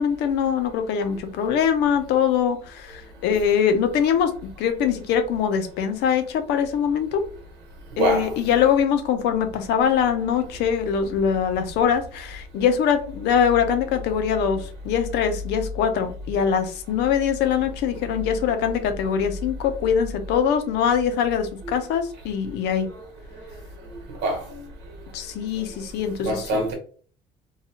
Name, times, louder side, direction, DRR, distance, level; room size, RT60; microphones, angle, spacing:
voice 1, 0.0-4.3 4.6-7.2 8.0-22.9 25.1-26.4, left 7 dB, 85° left, 0.6 m, -23 dB
voice 2, 8.0-8.3 21.6-21.7 24.2-24.5 26.2-26.7, right 1 dB, 90° right, 1.1 m, -24 dB
2.8 x 2.3 x 2.8 m
cardioid pair, 110°, 17 cm